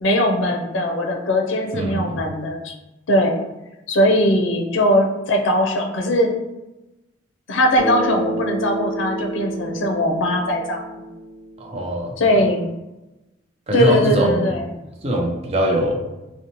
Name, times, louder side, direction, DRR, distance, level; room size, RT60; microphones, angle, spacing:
voice 1, 0.0-2.7 3.1-3.4 3.9-6.3 7.5-11.0 12.2-12.7 13.7-14.7, left 1 dB, 80° left, 2 dB, 0.4 m, -20 dB
voice 2, 1.7-2.2 11.6-12.4 13.7-14.5 15.0-16.0, right 1 dB, 30° right, 0 dB, 0.4 m, -22 dB
Bass guitar, 7.8-12.0, right 1 dB, 10° right, 1.2 m, -29 dB
2.7 x 2.0 x 2.8 m, 1.0 s
head